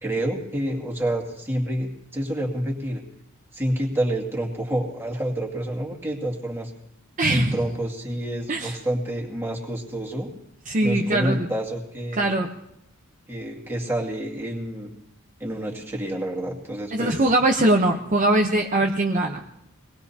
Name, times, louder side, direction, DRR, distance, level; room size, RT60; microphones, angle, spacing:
voice 1, 0.0-3.0 3.5-6.7 7.3-10.3 10.8-12.4 13.3-14.9 15.4-17.2, right 1 dB, 10° right, -2 dB, 2.3 m, -28 dB
voice 2, 7.2-7.6 8.5-8.8 10.7-11.5 12.1-12.5 16.9-19.4, right 1 dB, 35° right, 2 dB, 0.9 m, -21 dB
24.5 x 19.5 x 2.8 m, 0.82 s
head